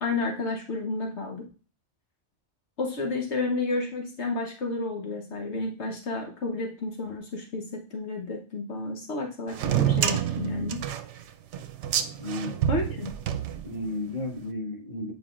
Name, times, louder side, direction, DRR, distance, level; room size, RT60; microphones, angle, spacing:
voice 1, 0.0-1.4 2.8-10.8 12.7-13.1, left 3 dB, 70° left, 2 dB, 1.2 m, -31 dB
sound 1, 9.5-14.1, right 10 dB, 80° right, 0.9 m, -28 dB
voice 2, 12.2-12.7 13.6-15.1, left 1 dB, 50° left, -2 dB, 1.8 m, -33 dB
8.6 x 5.1 x 2.4 m, 0.37 s
omnidirectional pair, 1.2 m